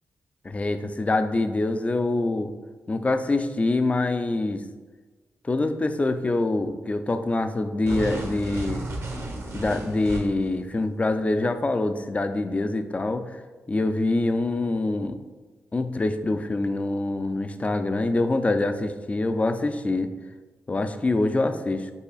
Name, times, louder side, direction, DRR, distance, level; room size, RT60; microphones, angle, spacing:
voice 1, 0.4-2.5 2.9-4.6 5.4-8.8 9.5-13.4 13.7-15.2 15.7-20.1 20.7-21.9, left 2 dB, 25° left, 9 dB, 0.3 m, -25 dB
sound 1, 7.8-10.5, right 1 dB, 65° right, 1.1 m, -33 dB
5.5 x 3.7 x 2.4 m, 1.3 s
cardioid pair, 70°, 5 cm